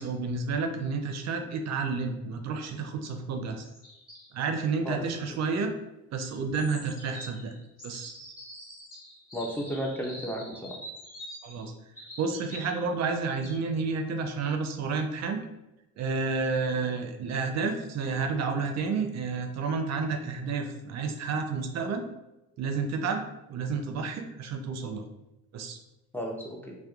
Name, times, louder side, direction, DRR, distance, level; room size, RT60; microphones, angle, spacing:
voice 1, 0.0-3.6 4.3-5.7 6.1-7.5 7.8-8.1 11.4-11.7 12.2-15.4 16.0-22.1 22.6-23.2 23.5-25.0 25.5-25.8, right 4 dB, 60° right, 5 dB, 0.4 m, -30 dB
sound 1, 3.6-4.3 6.5-12.8 13.1-13.6, equal, 30° left, 1.3 m, -46 dB
voice 2, 9.3-10.8 26.1-26.7, equal, 5° left, -2 dB, 0.4 m, -33 dB
2.8 x 2.1 x 2.3 m, 0.94 s
cardioid pair, 90°, 30 cm